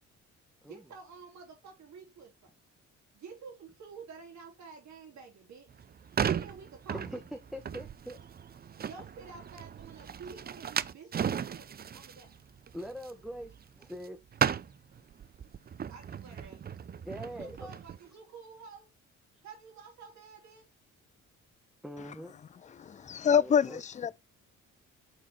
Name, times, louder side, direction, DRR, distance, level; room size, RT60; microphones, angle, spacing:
voice 1, 0.6-2.5 3.1-5.7 6.2-7.0 8.8-12.4 15.9-16.6 17.4-18.9 19.4-20.7, right 5 dB, 65° right, 4.1 m, -49 dB
sound 1, 5.7-14.1 14.3-18.0, right 8 dB, 30° right, 0.5 m, -36 dB
voice 2, 7.5-8.2 12.7-14.2 17.0-17.7 21.8-22.3 23.4-23.8, equal, ahead, 1.3 m, -42 dB
voice 3, 22.8-24.2, left 7 dB, 25° left, 0.4 m, -26 dB
9.0 x 4.0 x 4.3 m
cardioid pair, 90°, 30 cm